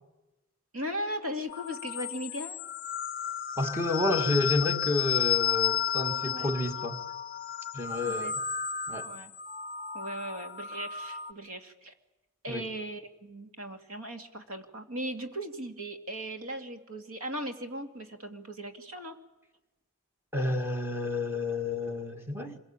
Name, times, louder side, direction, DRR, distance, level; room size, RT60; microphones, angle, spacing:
voice 1, 0.7-2.6 6.2-6.5 8.1-8.3 9.0-9.3 9.9-11.9 12.4-19.2, equal, 70° right, 2.5 m, -38 dB
sound 1, 1.5-11.3, left 9 dB, 40° left, 0.8 m, -32 dB
voice 2, 3.6-7.0 7.7-8.3 8.9-9.1 12.5-12.6 20.3-22.6, left 2 dB, 10° right, 1.9 m, -30 dB
25.5 x 23.0 x 8.9 m
head